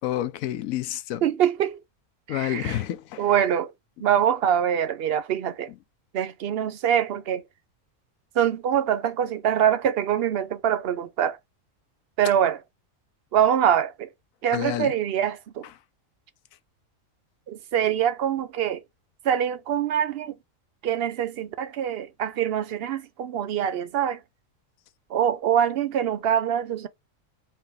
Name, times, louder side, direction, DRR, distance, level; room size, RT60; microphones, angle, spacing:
voice 1, 0.0-1.2 2.3-3.3 14.5-14.9, left 13 dB, 90° left, 1.0 m, -29 dB
voice 2, 1.2-1.8 2.3-2.8 3.2-3.7 4.0-5.7 6.1-7.4 8.4-11.4 12.2-12.6 13.3-14.1 14.4-15.6 17.5-18.8 19.2-20.3 20.8-24.2 25.1-26.9, right 9 dB, 65° right, 0.6 m, -24 dB
4.6 x 2.7 x 3.2 m
omnidirectional pair, 1.4 m